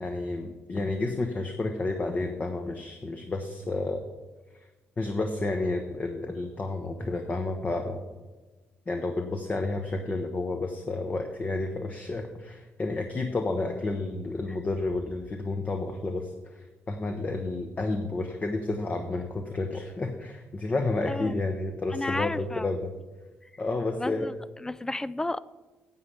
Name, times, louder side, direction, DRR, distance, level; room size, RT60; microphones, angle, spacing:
voice 1, 0.0-4.1 5.0-8.1 8.9-22.9 23.6-24.3, left 2 dB, 30° left, 4 dB, 1.0 m, -31 dB
voice 2, 21.1-21.4 21.9-22.7 23.9-25.4, left 2 dB, 10° left, 18 dB, 0.4 m, -33 dB
9.5 x 8.0 x 5.6 m, 1.2 s
cardioid pair, 90°, 5 cm